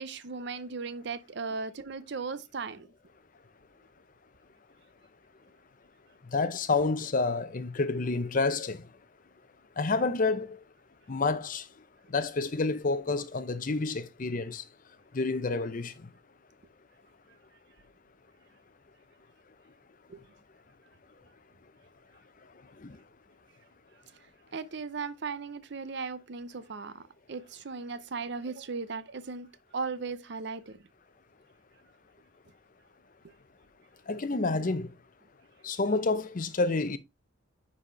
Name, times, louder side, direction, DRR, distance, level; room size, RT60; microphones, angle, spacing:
voice 1, 0.0-2.9 20.1-20.2 24.5-27.0 27.3-29.5 29.7-30.8, right 4 dB, 55° right, 0.6 m, -37 dB
voice 2, 6.3-8.8 9.8-10.6 11.1-11.6 12.1-14.6 15.1-15.9 22.8-23.0 34.1-34.9 35.6-37.0, left 3 dB, 40° left, 0.6 m, -29 dB
9.7 x 4.2 x 3.1 m
head